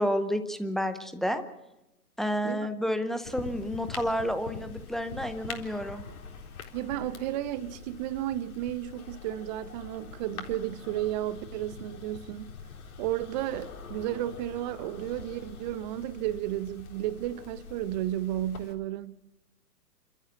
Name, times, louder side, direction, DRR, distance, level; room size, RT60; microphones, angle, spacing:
voice 1, 0.0-1.4 2.2-6.0, equal, ahead, 0.7 m, -30 dB
sound 1, 3.2-18.7, left 5 dB, 65° left, 4.1 m, -44 dB
voice 2, 6.7-12.5 13.0-19.1, right 13 dB, 30° right, 1.0 m, -33 dB
29.0 x 14.0 x 7.2 m
hypercardioid pair, 130°, 46 cm